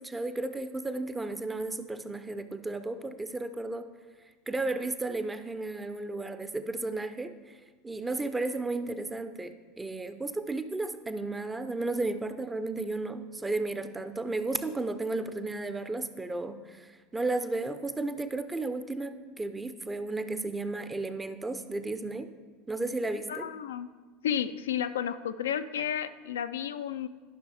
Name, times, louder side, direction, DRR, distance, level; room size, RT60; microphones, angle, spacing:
voice 1, 0.0-3.9 4.5-7.6 7.8-22.3 22.7-23.5, right 2 dB, 15° right, 10 dB, 0.6 m, -33 dB
voice 2, 23.3-23.9 24.2-27.1, left 9 dB, 70° left, 10 dB, 0.3 m, -32 dB
12.5 x 5.9 x 3.5 m, 1.4 s
figure-of-eight pair, 75°, 0 cm